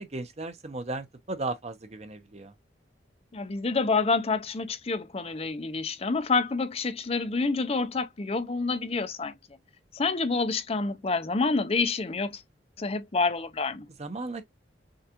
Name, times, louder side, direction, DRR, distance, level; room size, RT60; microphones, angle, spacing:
voice 1, 0.0-2.5 14.0-14.4, right 2 dB, 40° right, 0.9 m, -35 dB
voice 2, 3.3-9.3 9.9-12.4 12.8-13.9, left 4 dB, 35° left, 0.5 m, -28 dB
6.5 x 2.4 x 2.9 m
head